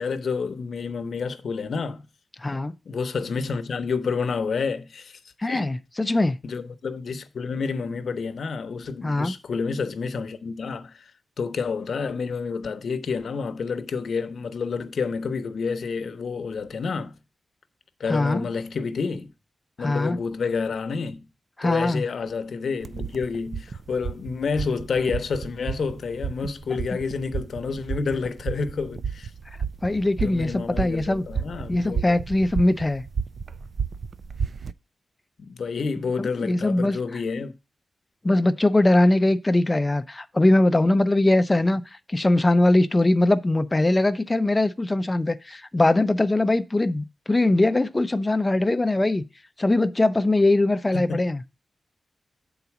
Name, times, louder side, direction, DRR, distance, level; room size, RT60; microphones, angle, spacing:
voice 1, 0.0-2.1 2.9-5.2 5.5-5.7 6.4-11.1 11.4-17.1 18.0-19.3 19.8-21.2 21.6-29.3 30.2-32.2 35.4-37.5 50.9-51.2, left 5 dB, 75° left, 0.8 m, -29 dB
voice 2, 2.4-2.7 5.4-6.4 9.0-9.4 18.1-18.5 19.8-20.2 21.6-22.0 29.8-31.2 31.7-33.0 36.2-37.0 38.2-41.8 42.1-49.2 49.6-51.4, left 2 dB, 20° left, 0.6 m, -21 dB
sound 1, 22.8-34.7, right 6 dB, 55° right, 0.4 m, -32 dB
8.2 x 4.0 x 5.9 m
wide cardioid pair, 120°, 0 cm